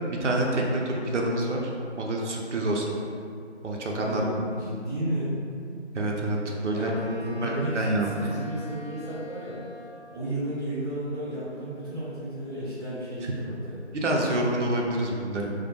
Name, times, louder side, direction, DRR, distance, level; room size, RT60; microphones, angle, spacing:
voice 1, 0.1-1.7 2.0-2.9 3.6-4.2 5.9-6.9 7.4-8.1 13.2-13.3 14.0-15.5, right 1 dB, 85° right, -1 dB, 0.5 m, -27 dB
voice 2, 3.9-5.4 6.7-9.8 10.1-13.8, equal, ahead, -19 dB, 0.6 m, -33 dB
Wind instrument woodwind instrument, 6.7-10.2, left 2 dB, 55° left, 0.8 m, -44 dB
2.2 x 2.1 x 2.7 m, 2.4 s
figure-of-eight pair, 165°, 35 cm